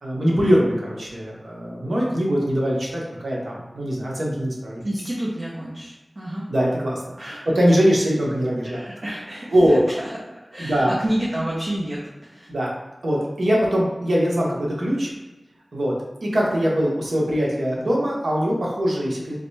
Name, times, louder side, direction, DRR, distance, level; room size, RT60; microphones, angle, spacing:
voice 1, 0.0-4.8 6.5-7.0 7.5-8.8 9.5-9.8 10.6-10.9 12.5-12.7 13.0-15.1 15.7-19.4, equal, 85° right, -3 dB, 1.1 m, -22 dB
voice 2, 4.8-6.4 7.2-7.5 8.6-10.2 10.5-12.5, right 1 dB, 50° right, -6 dB, 0.8 m, -29 dB
4.0 x 3.2 x 3.2 m, 1.1 s
wide cardioid pair, 55°, 0 cm